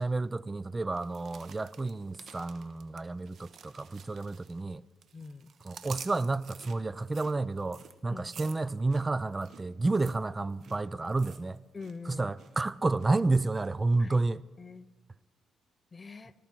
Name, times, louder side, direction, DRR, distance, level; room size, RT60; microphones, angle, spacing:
voice 1, 0.0-4.8 5.7-11.6 12.1-14.4, right 3 dB, 20° right, 0.4 m, -30 dB
sound 1, 0.9-4.7 5.0-12.0 12.2-12.6 13.0-13.7 14.1-14.2, right 7 dB, 60° right, 1.2 m, -51 dB
voice 2, 5.1-5.5 8.1-8.3 11.7-12.3 14.0-14.9 15.9-16.3, left 4 dB, 30° left, 0.7 m, -45 dB
19.0 x 13.5 x 4.5 m
cardioid pair, 90°, 0 cm